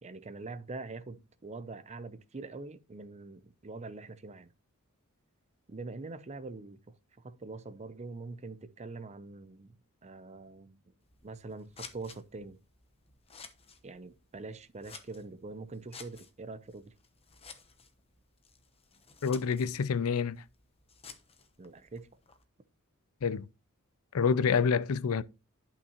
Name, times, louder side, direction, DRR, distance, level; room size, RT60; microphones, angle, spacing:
voice 1, 0.0-4.5 5.7-9.7 10.0-10.8 11.2-12.6 13.8-16.9 21.6-22.1, right 3 dB, 30° right, 0.6 m, -44 dB
Scissors, 11.0-22.4, left 5 dB, 25° left, 0.9 m, -54 dB
voice 2, 19.2-20.4 23.2-23.4 24.1-25.2, left 6 dB, 65° left, 0.4 m, -27 dB
11.0 x 5.8 x 3.0 m
head